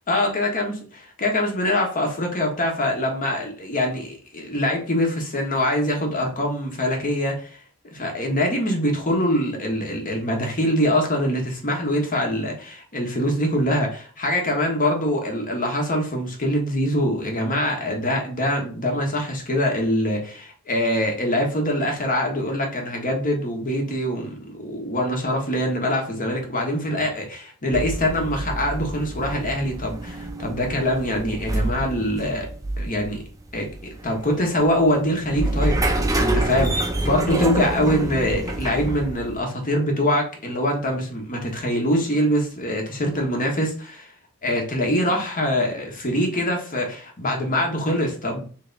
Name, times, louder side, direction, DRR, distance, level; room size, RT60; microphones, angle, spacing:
voice 1, 0.1-0.7 1.2-7.6 7.9-32.5 32.8-33.2 33.5-33.7 34.0-44.1 44.4-48.4, left 1 dB, 40° left, 2 dB, 1.2 m, -24 dB
sound 1, 27.7-39.4, right 1 dB, 15° right, 0.6 m, -27 dB
3.4 x 3.3 x 3.9 m, 0.41 s
head